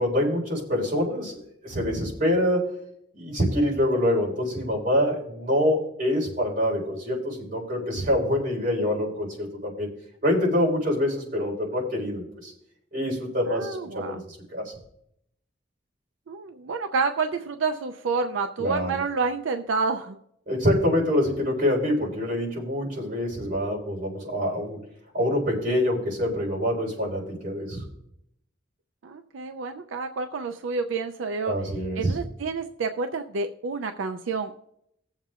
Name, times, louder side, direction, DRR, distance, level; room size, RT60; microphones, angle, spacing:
voice 1, 0.0-2.6 3.1-9.9 10.2-12.5 12.9-14.7 18.6-18.9 20.5-24.8 25.1-27.8 31.4-32.1, left 1 dB, 50° right, -3 dB, 4.1 m, -25 dB
voice 2, 13.5-14.2 16.3-20.2 29.0-31.5 32.0-34.6, right 4 dB, 90° right, 7 dB, 0.5 m, -29 dB
19.0 x 7.3 x 2.4 m, 0.76 s
head